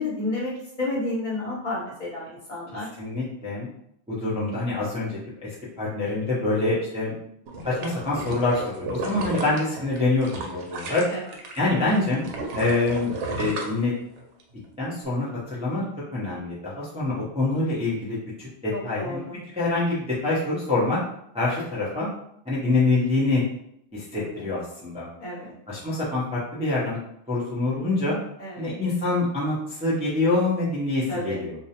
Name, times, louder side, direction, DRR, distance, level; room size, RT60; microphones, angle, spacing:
voice 1, 0.0-2.9 9.4-9.5 11.1-11.2 18.7-19.4 24.1-24.5 25.2-25.5 28.4-28.7 31.1-31.5, left 2 dB, 45° left, -6 dB, 1.0 m, -31 dB
voice 2, 3.0-3.7 4.1-7.1 7.6-11.0 11.6-12.2 12.5-13.9 14.8-15.8 16.1-19.2 19.5-21.0 21.3-22.1 22.5-23.4 23.9-25.1 25.7-27.0 27.3-28.2 28.6-31.5, left 2 dB, 10° right, -9 dB, 0.4 m, -25 dB
sound 1, 7.5-11.6 11.9-14.4 14.8-14.9, right 2 dB, 90° right, 0.9 m, -33 dB
2.4 x 2.0 x 2.8 m, 0.74 s
omnidirectional pair, 1.2 m